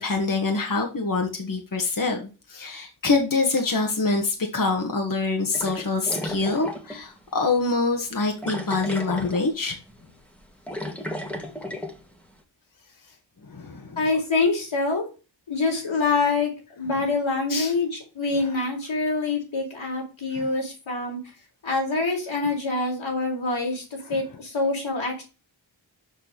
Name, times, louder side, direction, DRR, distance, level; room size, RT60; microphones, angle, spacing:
voice 1, 0.0-9.8 13.5-14.0 17.5-17.7 20.4-20.5 24.1-24.2, left 3 dB, 45° left, 2 dB, 1.7 m, -25 dB
sound 1, 5.5-7.0 7.4-7.5 8.4-9.6 9.9-10.1 10.4-12.0, left 1 dB, 5° left, 1.8 m, -34 dB
voice 2, 14.0-15.1 15.5-16.5 16.8-21.2 21.6-23.8 24.1-25.2, left 3 dB, 85° left, -1 dB, 3.8 m, -25 dB
6.9 x 5.3 x 6.7 m, 0.33 s
cardioid pair, 45°, 47 cm